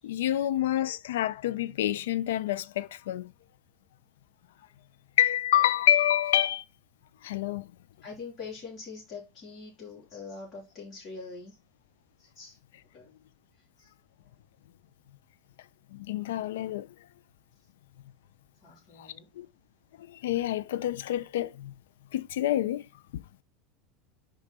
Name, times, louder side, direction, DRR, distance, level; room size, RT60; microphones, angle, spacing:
voice 1, 0.0-3.3 5.2-6.6 7.2-7.7 15.9-16.9 19.0-19.1 19.4-19.5 20.0-21.7 22.1-22.9 23.1-23.4, left 12 dB, 85° left, 0.4 m, -27 dB
voice 2, 8.0-11.6 12.2-12.6 12.9-13.1 13.8-13.9 18.6-19.3, left 4 dB, 35° left, 4.1 m, -44 dB
5.3 x 5.0 x 4.3 m
supercardioid pair, 125°, 0 cm